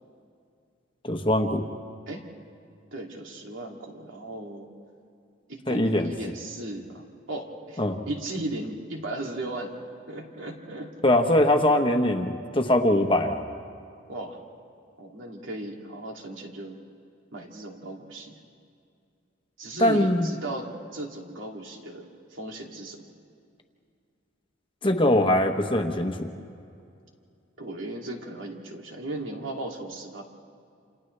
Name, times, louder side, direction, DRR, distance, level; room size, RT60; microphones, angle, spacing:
voice 1, 1.0-1.6 5.7-6.1 7.8-8.0 11.0-13.5 19.8-20.3 24.8-26.3, left 1 dB, 25° left, 5 dB, 1.1 m, -22 dB
voice 2, 2.9-4.7 5.5-9.7 10.1-10.9 14.1-14.4 15.0-16.8 17.3-18.3 19.6-23.0 27.6-30.2, right 2 dB, 75° right, 0 dB, 2.6 m, -36 dB
28.5 x 28.0 x 3.3 m, 2.4 s
head